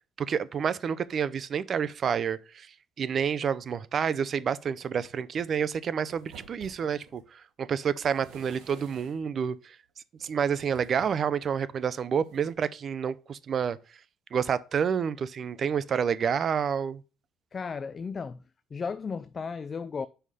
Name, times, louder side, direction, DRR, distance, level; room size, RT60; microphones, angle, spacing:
voice 1, 0.2-2.7 3.0-9.8 10.2-13.8 14.3-17.0, right 7 dB, 40° right, 0.5 m, -29 dB
sound 1, 6.1-7.3 7.9-9.3 10.2-11.3 12.2-12.5, right 6 dB, 80° right, 1.5 m, -51 dB
voice 2, 17.5-18.4 18.7-20.1, left 5 dB, 30° left, 0.3 m, -34 dB
5.6 x 4.8 x 5.5 m
cardioid pair, 115°, 0 cm